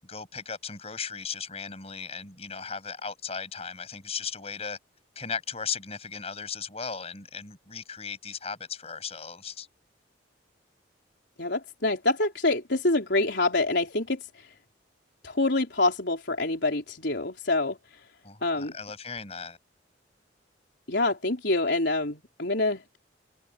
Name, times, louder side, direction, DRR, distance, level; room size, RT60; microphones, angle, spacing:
voice 1, 0.0-4.8 5.1-9.7 18.2-19.6, left 6 dB, 35° left, 6.9 m, -37 dB
voice 2, 11.4-14.2 15.2-17.8 18.4-18.8 20.9-23.0, left 2 dB, 65° left, 4.1 m, -26 dB
head